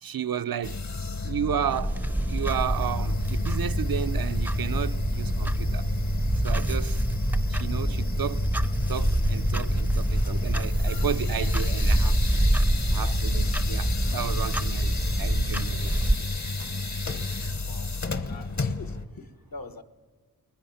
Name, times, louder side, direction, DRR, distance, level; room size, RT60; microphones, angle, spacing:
voice 1, 0.0-0.8 1.2-2.0 2.3-5.9 6.4-7.0 7.5-8.5 8.9-12.2 12.9-16.3, right 9 dB, 70° right, 0.6 m, -33 dB
sound 1, 0.6-19.1, left 2 dB, 50° left, 1.1 m, -31 dB
Clock, 1.7-16.2, right 1 dB, 5° right, 0.5 m, -26 dB
voice 2, 18.3-19.8, left 3 dB, 65° left, 1.3 m, -44 dB
30.0 x 20.5 x 5.7 m
wide cardioid pair, 75°, 37 cm